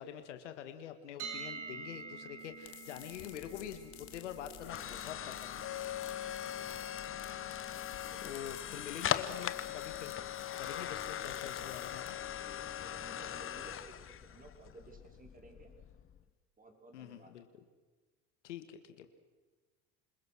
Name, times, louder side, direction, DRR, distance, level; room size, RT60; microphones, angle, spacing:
voice 1, 0.0-5.7 8.2-10.1 10.6-12.2 16.9-17.6 18.4-19.1, left 10 dB, 85° left, 9 dB, 1.9 m, -46 dB
sound 1, 1.2-13.1, right 5 dB, 80° right, 4.1 m, -51 dB
sound 2, 2.4-12.4, left 14 dB, 70° left, 2.3 m, -55 dB
sound 3, 3.1-16.2, left 10 dB, 35° left, 1.2 m, -40 dB
voice 2, 6.4-6.9 8.1-8.5 11.1-11.8 12.3-15.7 16.6-17.3, right 3 dB, 25° right, 2 dB, 5.5 m, -56 dB
27.0 x 21.0 x 6.4 m, 1.3 s
hypercardioid pair, 75°, 35 cm